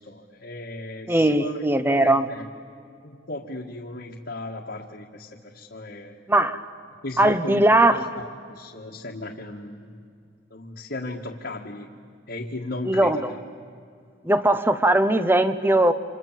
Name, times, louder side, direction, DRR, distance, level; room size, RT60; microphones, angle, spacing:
voice 1, 0.1-2.5 3.0-6.2 7.0-7.7 8.2-10.0 10.5-11.9 12.3-13.2, left 2 dB, 55° left, -2 dB, 1.8 m, -36 dB
voice 2, 1.1-2.3 6.3-6.6 7.2-8.1 12.8-13.3 14.2-15.9, right 1 dB, 10° right, 11 dB, 1.0 m, -19 dB
29.0 x 27.0 x 7.5 m, 2.3 s
head